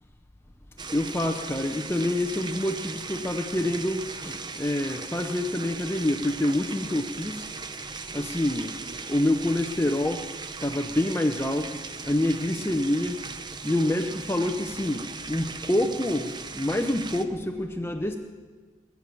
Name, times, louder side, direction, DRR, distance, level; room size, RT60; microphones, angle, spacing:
sound 1, 0.8-17.2, right 4 dB, 25° right, 0.7 m, -38 dB
voice 1, 0.9-7.5 8.1-8.7 9.1-10.3 10.6-13.3 13.6-18.2, left 1 dB, 15° left, 6 dB, 0.7 m, -27 dB
21.0 x 7.2 x 9.1 m, 1.4 s
head